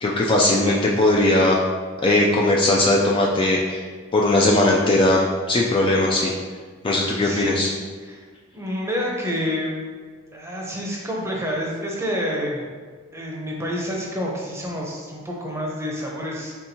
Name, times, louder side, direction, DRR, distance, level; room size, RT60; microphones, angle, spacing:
voice 1, 0.0-1.6 2.0-3.8 4.1-6.3 6.8-7.7, left 1 dB, 25° left, -3 dB, 0.3 m, -19 dB
voice 2, 7.2-7.6 8.0-8.2 8.5-9.7 10.3-12.6 13.1-16.5, equal, 15° right, -2 dB, 0.7 m, -28 dB
4.4 x 3.5 x 2.8 m, 1.5 s
head